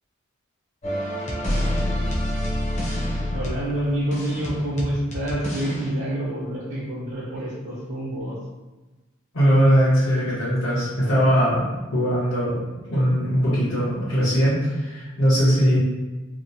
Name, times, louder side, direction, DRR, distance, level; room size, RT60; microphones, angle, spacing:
sound 1, 0.8-5.9, equal, 35° left, 0.5 m, -27 dB
voice 1, 3.3-8.4, right 1 dB, 80° right, -8 dB, 0.7 m, -27 dB
voice 2, 9.3-15.8, equal, 85° left, -12 dB, 0.9 m, -20 dB
2.8 x 2.0 x 2.6 m, 1.1 s
head